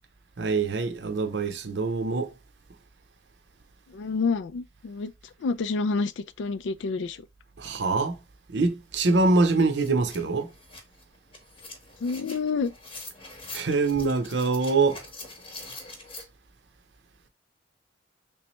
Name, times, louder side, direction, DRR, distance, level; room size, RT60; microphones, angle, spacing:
voice 1, 0.4-2.3 7.6-8.2 8.5-10.5 13.5-15.1, right 3 dB, 65° right, 0.6 m, -24 dB
voice 2, 3.9-5.1 5.4-7.2 12.0-12.7, left 4 dB, 75° left, 0.4 m, -28 dB
sound 1, 8.9-9.0 9.4-16.2, left 3 dB, 30° left, 0.9 m, -44 dB
3.3 x 3.1 x 2.9 m
head